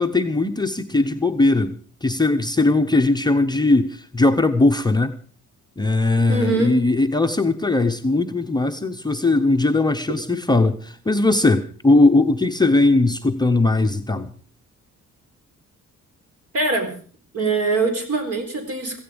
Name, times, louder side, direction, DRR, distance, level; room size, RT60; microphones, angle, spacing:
voice 1, 0.0-5.2 5.8-14.3, left 2 dB, 15° left, 4 dB, 0.7 m, -19 dB
voice 2, 6.3-6.7 16.5-16.9 17.3-19.0, right 3 dB, 55° right, 7 dB, 3.9 m, -22 dB
16.0 x 15.5 x 5.1 m, 0.43 s
wide cardioid pair, 165°, 30 cm